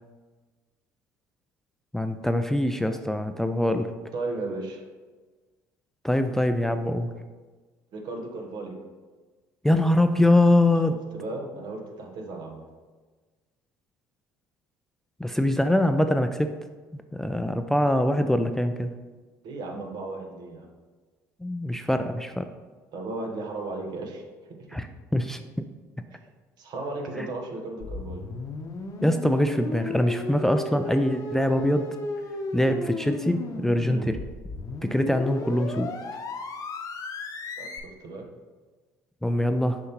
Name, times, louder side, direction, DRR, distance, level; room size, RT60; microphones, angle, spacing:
voice 1, 1.9-3.9 6.0-7.1 9.6-11.0 15.2-16.5 16.9-18.9 21.4-22.5 24.7-24.9 25.1-25.7 27.2-27.3 29.0-31.9 32.5-34.2 34.8-36.0 39.2-39.8, left 1 dB, 5° left, 8 dB, 0.4 m, -23 dB
voice 2, 4.1-4.8 7.9-8.8 10.9-12.6 19.4-20.7 22.9-24.2 24.6-24.9 26.1-26.2 26.6-28.2 33.8-34.1 37.6-38.3, right 2 dB, 60° right, 3 dB, 1.1 m, -35 dB
sound 1, 27.8-37.8, left 3 dB, 45° left, 0.8 m, -35 dB
6.4 x 5.5 x 2.9 m, 1.3 s
hypercardioid pair, 65°, 8 cm